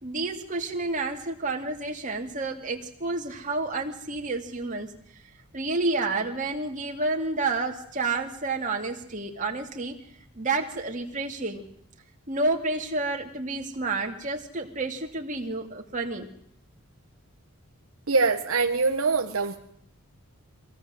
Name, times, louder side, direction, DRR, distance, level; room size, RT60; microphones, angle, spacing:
voice 1, 0.0-4.9 5.5-10.0 10.3-11.6 12.3-16.3, right 3 dB, 35° right, 2 dB, 2.6 m, -30 dB
voice 2, 18.1-19.6, right 4 dB, 70° right, 4 dB, 1.3 m, -23 dB
24.0 x 17.0 x 7.7 m, 0.71 s
head